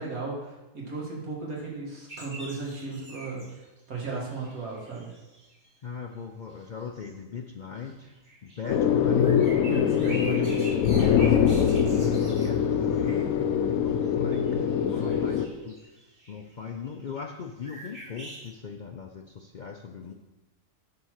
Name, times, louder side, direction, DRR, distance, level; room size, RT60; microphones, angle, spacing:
voice 1, 0.0-3.6 3.9-5.1 9.7-11.8 14.7-15.3, right 3 dB, 80° right, -4 dB, 2.4 m, -36 dB
sound 1, 2.1-5.7 6.5-7.1 7.8-13.0 14.0-17.4 17.6-18.5, right 1 dB, 40° right, 2.2 m, -45 dB
voice 2, 5.8-8.1 8.4-9.4 10.2-10.6 11.7-15.7 16.3-20.1, left 6 dB, 70° left, 3 dB, 0.4 m, -39 dB
sound 2, 8.7-15.5, left 8 dB, 85° left, 1.1 m, -23 dB
9.3 x 4.0 x 6.4 m, 1.1 s
omnidirectional pair, 1.5 m